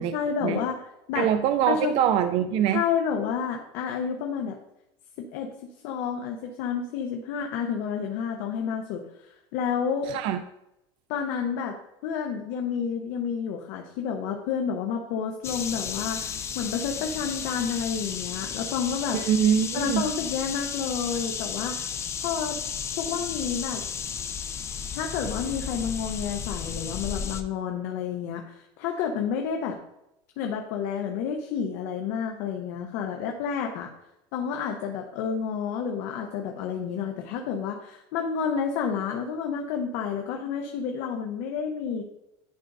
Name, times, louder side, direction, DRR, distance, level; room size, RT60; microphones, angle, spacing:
voice 1, 0.0-1.3 1.7-1.9 2.7-4.6 5.2-10.1 11.1-11.8 12.0-19.2 19.7-21.9 22.2-22.6 23.0-23.8 24.9-29.8 30.4-33.9 34.3-42.0, left 7 dB, 65° left, 3 dB, 0.9 m, -30 dB
voice 2, 1.2-2.8 10.1-10.4 19.1-20.0, right 9 dB, 45° right, 9 dB, 0.4 m, -23 dB
sound 1, 15.4-27.4, left 7 dB, 20° left, 0.4 m, -33 dB
10.5 x 5.2 x 2.6 m, 0.85 s
cardioid pair, 150°, 13 cm